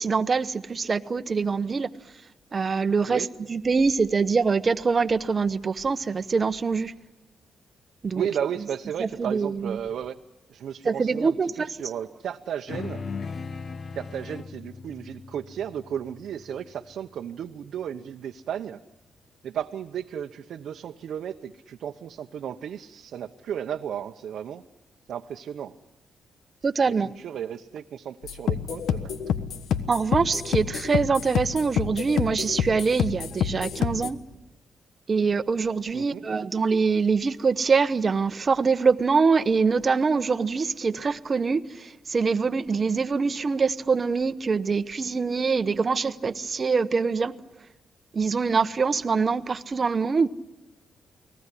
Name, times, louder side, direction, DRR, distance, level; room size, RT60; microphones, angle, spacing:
voice 1, 0.0-1.9 2.5-6.9 8.0-8.3 9.0-9.8 10.8-11.7 26.6-27.1 29.9-34.2 35.1-47.4 48.1-50.3, right 5 dB, 35° right, 0.9 m, -24 dB
voice 2, 8.1-10.2 10.5-13.0 14.0-18.8 19.4-24.6 25.1-25.7 27.0-29.1 35.9-36.3, right 9 dB, 70° right, 0.9 m, -34 dB
sound 1, 12.7-17.4, left 5 dB, 40° left, 0.9 m, -38 dB
sound 2, 28.2-34.1, left 8 dB, 85° left, 1.4 m, -28 dB
29.5 x 19.5 x 9.9 m
cardioid pair, 130°, 0 cm